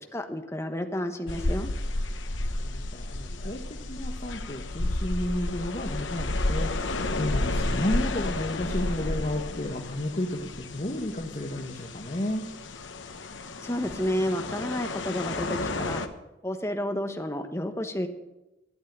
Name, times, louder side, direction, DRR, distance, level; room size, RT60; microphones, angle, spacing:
voice 1, 0.1-1.7 13.6-16.0 16.4-18.1, equal, 15° left, 6 dB, 1.1 m, -31 dB
sound 1, 1.3-16.1, left 2 dB, 90° left, 1.0 m, -32 dB
voice 2, 2.6-3.6 3.9-12.4, left 1 dB, 40° left, 2 dB, 1.2 m, -32 dB
12.5 x 8.4 x 8.8 m, 0.97 s
head